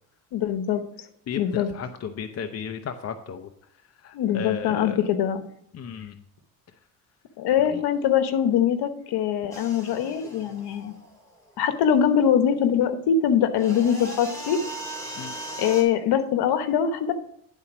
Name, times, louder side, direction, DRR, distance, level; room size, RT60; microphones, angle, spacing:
voice 1, 0.3-0.8 1.4-1.7 4.1-5.4 7.4-10.9 11.6-14.6 15.6-17.1, left 8 dB, 75° left, 10 dB, 1.2 m, -23 dB
voice 2, 1.3-3.5 4.0-5.0 5.7-6.2 7.6-7.8 15.1-15.3, left 7 dB, 40° left, 7 dB, 0.7 m, -34 dB
sound 1, 9.5-11.5 13.6-15.8, right 1 dB, 10° left, 2.8 m, -38 dB
10.5 x 4.2 x 6.1 m, 0.71 s
cardioid pair, 100°, 39 cm